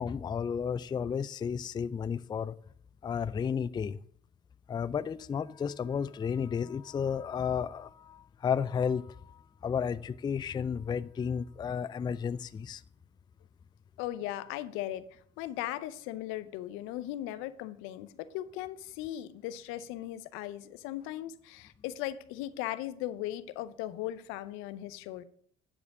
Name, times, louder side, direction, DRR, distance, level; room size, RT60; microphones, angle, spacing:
voice 1, 0.0-2.6 3.0-4.0 4.7-12.8, left 7 dB, 20° left, 0.3 m, -33 dB
voice 2, 14.0-15.1 15.4-25.2, left 13 dB, 75° left, 0.6 m, -38 dB
9.7 x 5.0 x 4.9 m
hypercardioid pair, 60°, 21 cm